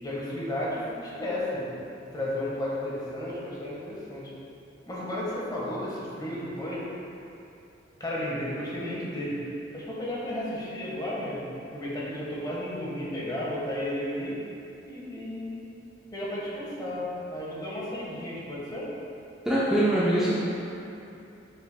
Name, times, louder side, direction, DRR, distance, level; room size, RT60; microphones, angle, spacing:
voice 1, 0.0-1.7 2.0-4.3 4.9-6.9 8.0-9.3 9.7-11.4 11.7-14.4 14.9-15.6 16.1-18.9, left 1 dB, 25° left, -6 dB, 1.3 m, -33 dB
voice 2, 19.4-20.4, right 1 dB, 5° right, -10 dB, 0.6 m, -23 dB
6.6 x 6.5 x 2.2 m, 2.8 s
head